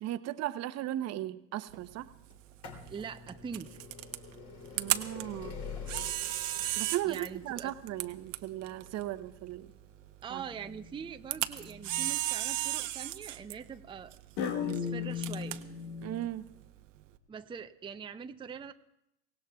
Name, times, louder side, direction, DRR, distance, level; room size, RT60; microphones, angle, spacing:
voice 1, 0.0-2.1 4.8-5.6 6.8-9.7 10.3-10.4 16.0-16.5, right 14 dB, 45° right, 12 dB, 0.9 m, -36 dB
Camera, 1.7-17.2, right 14 dB, 80° right, 1.0 m, -38 dB
sound 1, 2.3-13.9 14.8-14.9 15.8-15.9 16.1-16.2, left 5 dB, 45° left, 3.1 m, -48 dB
voice 2, 2.8-3.7 7.0-7.7 10.2-15.6 17.3-18.7, right 6 dB, 15° right, 7 dB, 0.6 m, -43 dB
sound 2, 10.5-10.9 11.6-12.1 14.4-16.3, left 7 dB, 65° left, 1.4 m, -36 dB
24.5 x 17.5 x 2.3 m, 0.80 s
hypercardioid pair, 85°, 38 cm